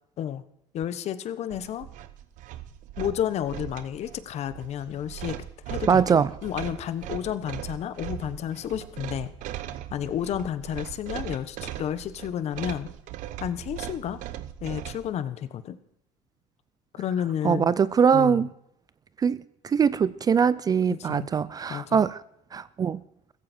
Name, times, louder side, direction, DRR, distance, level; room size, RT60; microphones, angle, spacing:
voice 1, 0.7-1.9 3.0-9.3 9.9-12.9 13.4-14.2 14.6-15.8 17.0-17.7 18.1-18.5 20.9-21.3 21.7-22.1, left 10 dB, 45° left, 1.2 m, -31 dB
sound 1, 1.5-15.1, right 12 dB, 60° right, 1.0 m, -39 dB
voice 2, 5.9-6.3 17.4-18.5 19.2-22.2 22.5-23.0, right 6 dB, 25° right, 0.5 m, -22 dB
15.5 x 15.0 x 4.5 m
cardioid pair, 125°, 15 cm